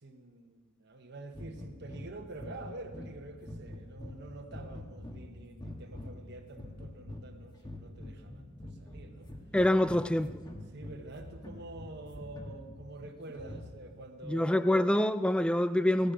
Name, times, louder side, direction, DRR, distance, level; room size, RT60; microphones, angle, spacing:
voice 1, 0.0-9.3 9.8-10.0 10.7-14.7, right 2 dB, 55° right, 1.1 m, -47 dB
sound 1, 1.3-14.0, left 1 dB, 20° left, 1.5 m, -46 dB
voice 2, 9.5-10.3 14.3-16.1, left 1 dB, 5° left, 0.4 m, -26 dB
17.0 x 14.5 x 5.1 m
head